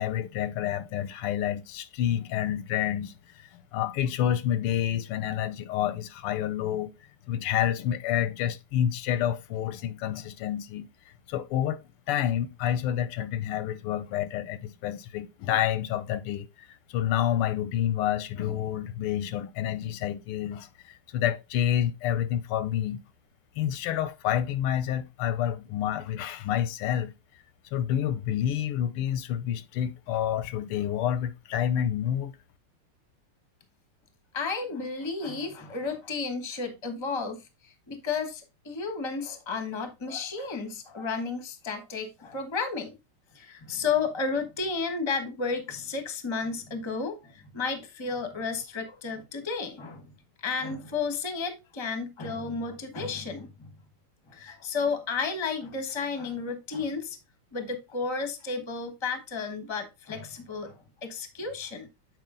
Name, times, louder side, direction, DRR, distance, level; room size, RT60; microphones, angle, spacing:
voice 1, 0.0-6.9 7.3-10.9 11.3-11.8 12.1-23.0 23.6-27.1 27.7-32.3, left 10 dB, 90° left, 1.6 m, -29 dB
voice 2, 34.3-42.9 43.3-50.1 50.4-53.5 54.3-57.2 57.5-61.9, left 4 dB, 20° left, 0.8 m, -32 dB
7.7 x 4.8 x 3.7 m
omnidirectional pair, 2.4 m